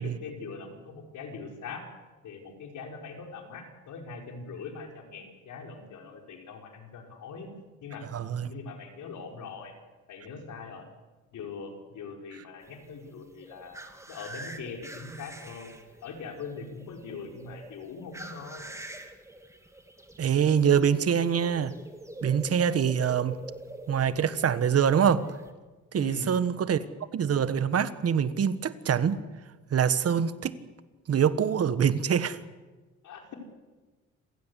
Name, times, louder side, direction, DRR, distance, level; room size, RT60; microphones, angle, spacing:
voice 1, 0.0-1.8 2.2-7.5 7.8-8.0 8.5-9.7 10.1-10.9 11.3-13.8 14.1-15.8 16.0-18.7 22.7-22.8 26.0-26.4 33.0-33.3, left 4 dB, 75° left, 2 dB, 5.2 m, -42 dB
voice 2, 8.1-8.5 20.2-21.7 22.2-23.3 23.9-25.2 25.9-26.8 27.1-29.2 29.7-30.6 31.1-32.4, right 8 dB, 50° right, 13 dB, 1.4 m, -24 dB
sound 1, 12.6-25.5, right 1 dB, 10° right, 2.5 m, -46 dB
27.5 x 16.0 x 8.3 m, 1.2 s
cardioid pair, 90°, 30 cm